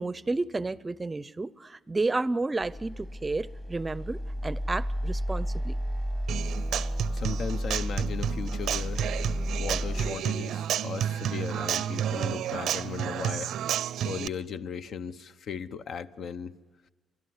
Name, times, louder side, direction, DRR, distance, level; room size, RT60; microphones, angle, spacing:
voice 1, 0.0-5.8, right 3 dB, 20° right, 0.6 m, -31 dB
sound 1, 2.6-10.1, equal, 25° left, 1.6 m, -32 dB
Human voice / Acoustic guitar, 6.3-14.3, right 10 dB, 75° right, 0.6 m, -31 dB
voice 2, 7.1-9.2 9.6-13.5 14.0-16.5, left 6 dB, 60° left, 0.8 m, -37 dB
29.5 x 12.0 x 9.6 m
cardioid pair, 90°, 0 cm